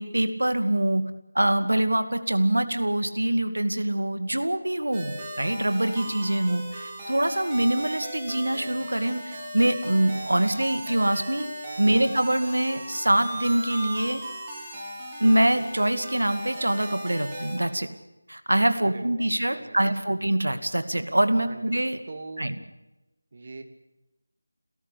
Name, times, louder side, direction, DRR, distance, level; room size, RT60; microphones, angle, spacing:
voice 1, 0.0-11.5 11.8-14.2 15.2-17.9 18.3-22.0 22.4-22.6, right 1 dB, 85° right, 9 dB, 2.3 m, -24 dB
sound 1, 4.9-17.6, right 1 dB, 15° right, 4.9 m, -37 dB
voice 2, 18.8-19.9 21.5-21.6 22.1-22.5 23.3-23.6, right 3 dB, 45° right, 7 dB, 2.5 m, -42 dB
29.0 x 13.5 x 8.6 m, 0.99 s
figure-of-eight pair, 170°, 0 cm